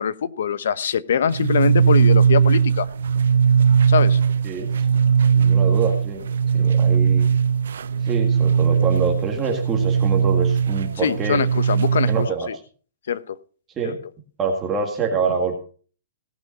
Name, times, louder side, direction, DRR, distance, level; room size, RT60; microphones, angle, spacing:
voice 1, 0.0-2.9 3.9-4.2 11.0-12.5 13.1-13.4 13.8-13.9, left 7 dB, 75° left, 14 dB, 1.0 m, -23 dB
sound 1, 1.3-12.3, right 7 dB, 85° right, 0.5 m, -19 dB
voice 2, 5.3-6.2 6.5-7.3 8.0-11.4 12.1-12.5 13.8-14.0 14.4-15.6, right 5 dB, 15° right, 1 dB, 1.9 m, -25 dB
18.0 x 6.1 x 5.4 m, 0.41 s
hypercardioid pair, 165°, 0 cm